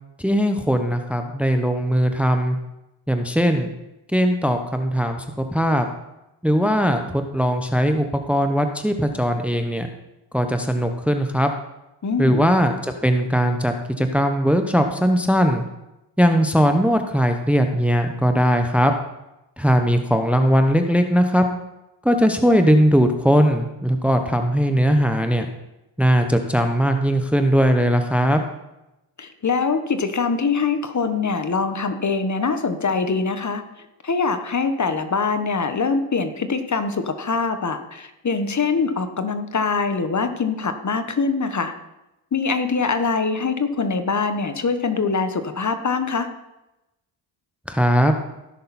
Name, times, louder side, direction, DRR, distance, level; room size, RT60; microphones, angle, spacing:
voice 1, 0.2-2.6 3.1-3.7 4.1-5.9 6.4-9.9 10.3-11.5 12.2-15.6 16.2-18.9 19.6-21.5 22.0-25.5 26.0-28.4 47.7-48.1, equal, 5° right, 6 dB, 0.9 m, -19 dB
voice 2, 12.0-12.4 29.2-33.6 34.0-41.7 42.3-46.3, left 4 dB, 35° left, 8 dB, 1.2 m, -23 dB
16.0 x 6.6 x 4.2 m, 0.94 s
cardioid pair, 75°, 49 cm